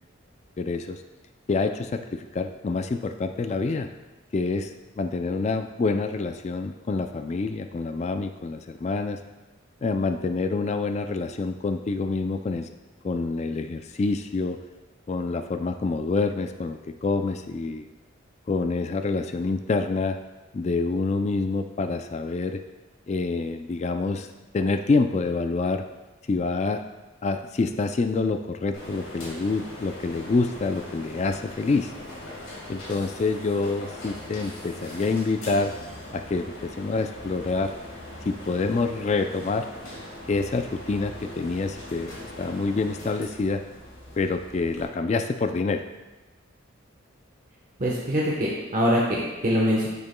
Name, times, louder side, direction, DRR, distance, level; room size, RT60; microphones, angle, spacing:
voice 1, 0.6-1.0 1.5-3.9 4.3-9.2 9.8-12.7 13.0-14.6 15.1-17.8 18.5-20.2 20.5-22.6 23.1-24.3 24.5-25.8 26.3-26.8 27.2-31.9 32.7-35.7 36.1-37.7 38.2-39.7 40.3-43.6 44.2-45.8, left 3 dB, 35° left, 7 dB, 0.3 m, -27 dB
sound 1, 28.7-44.9, left 1 dB, 80° left, 2.4 m, -41 dB
voice 2, 47.8-49.9, equal, 40° right, -4 dB, 1.0 m, -23 dB
10.0 x 6.8 x 2.2 m, 1.1 s
head